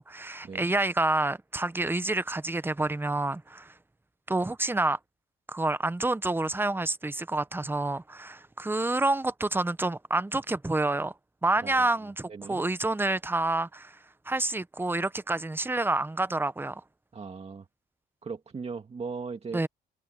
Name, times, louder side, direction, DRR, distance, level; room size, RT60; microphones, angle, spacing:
voice 1, 0.0-3.7 4.3-5.0 5.5-11.1 11.4-14.0 14.3-16.8 19.5-19.7, right 2 dB, 10° right, 0.9 m, -28 dB
voice 2, 12.3-12.6 17.1-17.7 18.2-19.7, right 5 dB, 35° right, 2.1 m, -38 dB
cardioid pair, 90°, 19 cm